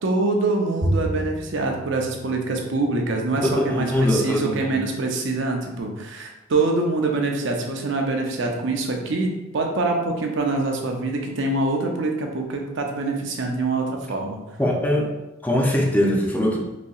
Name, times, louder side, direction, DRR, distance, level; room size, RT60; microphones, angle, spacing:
voice 1, 0.0-14.4, right 3 dB, 65° right, 2 dB, 0.5 m, -25 dB
Bowed string instrument, 0.8-3.4, right 1 dB, 35° right, 0.9 m, -30 dB
voice 2, 3.4-4.8 14.6-15.1 15.4-16.6, left 1 dB, 10° left, -1 dB, 0.4 m, -21 dB
4.0 x 2.7 x 2.3 m, 1.0 s
head